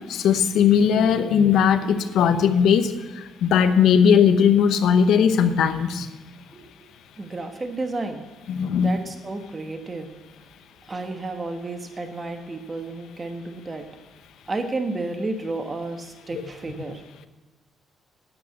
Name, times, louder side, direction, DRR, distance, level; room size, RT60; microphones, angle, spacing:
voice 1, 0.1-2.9 3.4-6.1 8.5-8.9 16.3-16.5, left 7 dB, 80° left, 10 dB, 0.9 m, -18 dB
voice 2, 7.2-8.3 8.8-10.1 10.9-13.9 14.5-17.0, right 2 dB, 30° right, 6 dB, 1.2 m, -31 dB
9.6 x 9.4 x 8.3 m, 1.1 s
cardioid pair, 90°, 0 cm